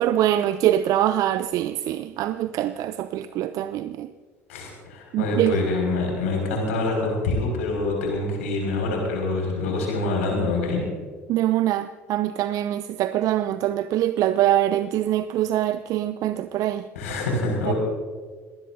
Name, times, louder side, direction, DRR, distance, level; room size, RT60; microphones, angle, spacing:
voice 1, 0.0-4.1 5.1-5.6 11.3-16.8 17.7-17.8, right 12 dB, 50° right, 12 dB, 0.5 m, -23 dB
voice 2, 4.5-10.8 17.0-17.7, left 2 dB, 70° left, 0 dB, 5.5 m, -25 dB
26.5 x 19.0 x 2.7 m, 1.5 s
figure-of-eight pair, 65°, 8 cm